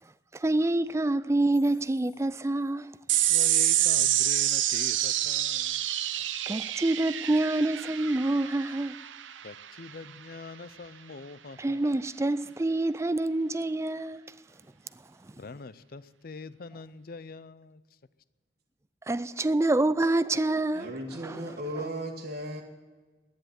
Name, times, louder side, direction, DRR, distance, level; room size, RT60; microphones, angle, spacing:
voice 1, 0.3-2.9 6.5-9.0 11.6-14.2 19.1-20.9 21.2-21.4, right 2 dB, 15° right, 0.4 m, -27 dB
sound 1, 3.1-9.9, right 12 dB, 90° right, 0.7 m, -27 dB
voice 2, 3.3-5.8 9.4-11.8 15.4-17.8, left 4 dB, 50° left, 0.5 m, -43 dB
voice 3, 20.7-22.6, right 1 dB, 55° right, 1.5 m, -36 dB
11.5 x 10.0 x 9.4 m
head